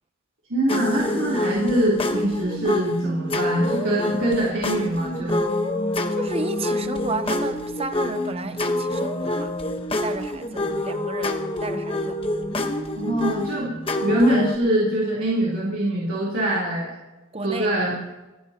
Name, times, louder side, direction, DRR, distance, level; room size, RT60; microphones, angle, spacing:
voice 1, 0.5-5.4 13.0-13.7 14.0-16.9 17.4-17.9, right 1 dB, 65° right, 3.5 m, -23 dB
sound 1, 0.7-14.6, left 1 dB, 25° left, 1.1 m, -27 dB
voice 2, 6.1-9.5 10.0-12.2 17.3-17.7, right 3 dB, 25° right, 0.8 m, -32 dB
28.0 x 15.0 x 2.9 m
head